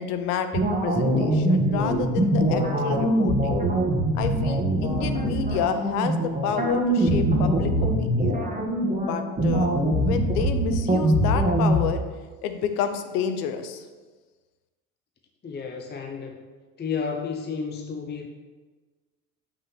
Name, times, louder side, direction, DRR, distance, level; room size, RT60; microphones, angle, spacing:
voice 1, 0.0-3.6 4.1-8.4 9.0-9.7 10.0-12.0 12.4-13.8, left 8 dB, 75° left, 8 dB, 0.9 m, -30 dB
sound 1, 0.5-11.8, right 1 dB, 15° right, 1.8 m, -23 dB
voice 2, 15.4-16.5 16.8-18.3, left 5 dB, 20° left, 3 dB, 0.8 m, -32 dB
5.8 x 5.4 x 6.0 m, 1.4 s
hypercardioid pair, 75°, 46 cm